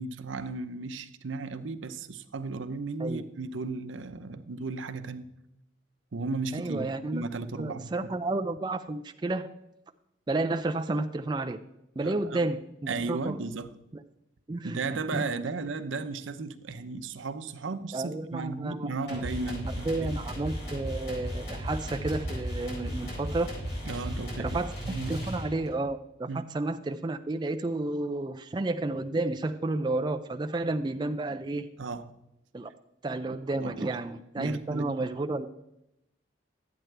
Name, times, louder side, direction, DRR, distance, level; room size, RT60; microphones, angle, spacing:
voice 1, 0.0-5.3 6.1-6.9 7.1-8.1 12.0-12.4 12.9-13.7 14.6-20.1 23.9-25.3 26.3-26.4 31.8-32.1 33.6-33.9 34.4-34.9, right 3 dB, 85° right, 0.7 m, -35 dB
voice 2, 6.5-7.2 7.6-9.5 10.3-11.6 12.0-13.4 13.9-14.0 14.5-14.8 15.1-15.2 17.9-19.3 19.9-23.5 23.9-24.1 24.4-24.7 25.1-26.3 26.5-31.7 32.5-32.7 33.0-35.5, right 2 dB, 25° right, 0.3 m, -31 dB
sound 1, 19.1-25.8, equal, 60° left, 4.6 m, -35 dB
12.0 x 8.9 x 3.3 m
head